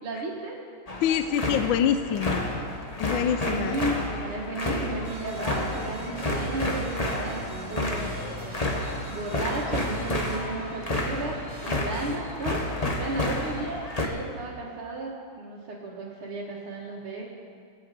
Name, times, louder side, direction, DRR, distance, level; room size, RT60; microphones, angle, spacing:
voice 1, 0.0-0.6 3.3-8.2 9.1-11.4 11.6-17.2, right 2 dB, 75° right, -7 dB, 2.7 m, -34 dB
sound 1, 0.9-14.1, left 1 dB, 25° left, 1.0 m, -30 dB
voice 2, 1.0-2.4 3.0-3.8, left 9 dB, 75° left, 9 dB, 1.3 m, -25 dB
sound 2, 5.0-12.2, right 1 dB, 50° right, 3.6 m, -43 dB
sound 3, 5.3-10.0, right 3 dB, 15° right, 3.3 m, -44 dB
24.5 x 9.0 x 5.2 m, 2.1 s
omnidirectional pair, 2.4 m